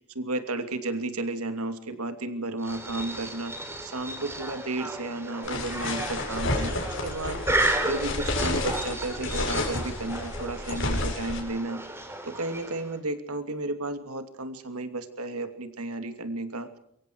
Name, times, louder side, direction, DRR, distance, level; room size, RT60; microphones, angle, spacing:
voice 1, 0.1-16.8, right 2 dB, 85° right, 8 dB, 2.8 m, -33 dB
sound 1, 2.6-13.0, right 2 dB, 10° right, 3.8 m, -33 dB
sound 2, 5.4-11.4, left 2 dB, 55° left, 6.7 m, -31 dB
28.0 x 24.5 x 4.7 m, 0.71 s
head